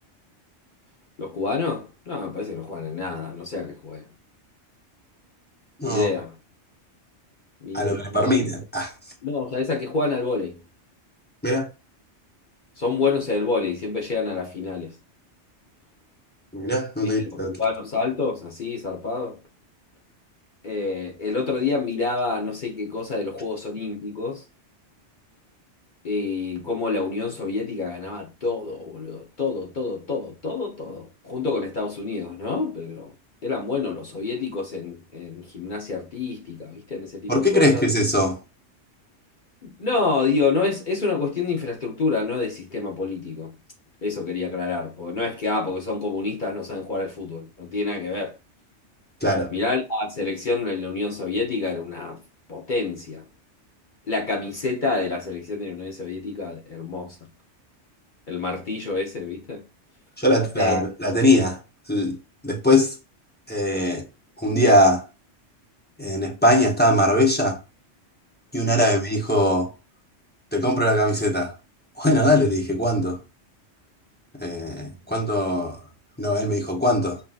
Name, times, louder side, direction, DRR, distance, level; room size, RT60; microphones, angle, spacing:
voice 1, 1.2-4.1 5.8-6.3 7.6-8.4 9.2-10.6 12.8-14.9 17.0-17.1 17.6-19.4 20.6-24.4 26.0-33.1 33.4-37.8 39.6-43.5 44.0-48.3 49.5-52.2 52.5-53.2 54.1-57.2 58.3-59.6 60.6-60.8 68.8-68.9, left 4 dB, 45° left, 0.9 m, -28 dB
voice 2, 7.7-8.9 11.4-11.7 16.5-17.5 37.3-38.4 49.2-49.5 60.2-61.6 61.9-62.2 62.4-62.9 63.5-64.0 64.4-65.0 66.0-67.6 68.5-69.7 70.5-71.5 72.0-73.2 74.4-75.8 76.2-77.2, left 1 dB, 10° left, 0.6 m, -21 dB
5.6 x 2.7 x 2.4 m
omnidirectional pair, 1.2 m